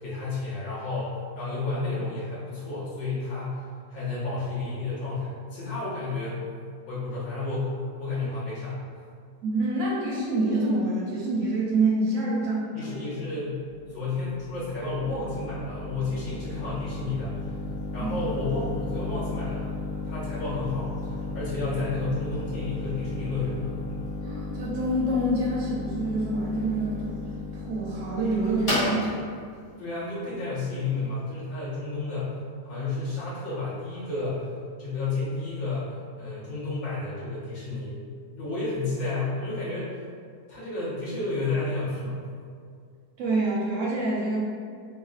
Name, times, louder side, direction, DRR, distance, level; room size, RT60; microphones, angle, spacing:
voice 1, 0.0-3.6 3.9-6.4 6.9-7.7 8.0-9.0 12.7-13.6 13.9-17.3 17.9-19.8 20.0-23.7 29.8-32.4 32.6-34.5 34.8-38.0 38.4-39.9 40.5-42.3, left 3 dB, 60° left, -10 dB, 1.5 m, -31 dB
voice 2, 9.4-12.9 18.0-18.1 24.2-27.1 27.5-29.1 43.2-44.4, right 2 dB, 65° right, -5 dB, 0.8 m, -26 dB
sound 1, 13.6-31.2, left 2 dB, 25° left, 0.8 m, -34 dB
3.5 x 2.2 x 2.4 m, 2.2 s
omnidirectional pair, 1.7 m